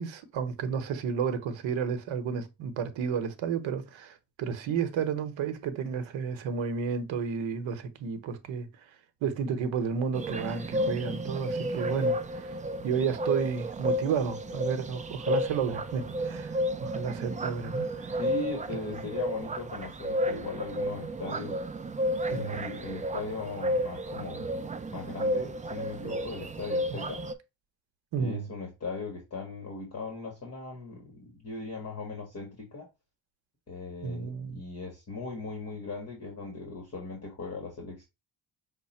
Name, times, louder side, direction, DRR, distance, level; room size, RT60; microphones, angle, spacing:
voice 1, 0.0-8.7 9.2-12.5 12.8-18.2 18.9-19.0 22.3-22.6 28.1-28.5 34.0-34.6, right 6 dB, 85° right, 0.9 m, -32 dB
sound 1, 10.1-27.3, equal, 20° right, 0.3 m, -32 dB
voice 2, 18.2-21.6 22.2-24.7 24.9-27.2 28.2-32.9 33.7-38.0, left 3 dB, 35° left, 1.2 m, -39 dB
5.7 x 2.1 x 4.1 m
cardioid pair, 110°, 44 cm